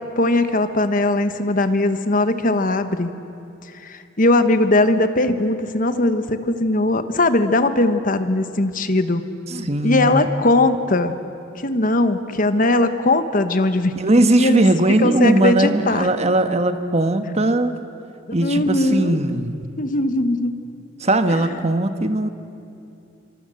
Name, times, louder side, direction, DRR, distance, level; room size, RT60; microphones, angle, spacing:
voice 1, 0.2-3.1 3.8-9.2 9.8-11.1 11.5-14.0 14.4-14.7 15.0-16.1 18.4-19.2 19.8-20.6, left 2 dB, 45° left, 9 dB, 1.3 m, -19 dB
voice 2, 9.5-10.4 14.0-17.7 18.3-19.6 21.0-22.3, right 1 dB, 35° right, 8 dB, 1.3 m, -19 dB
27.0 x 25.0 x 7.8 m, 2.6 s
head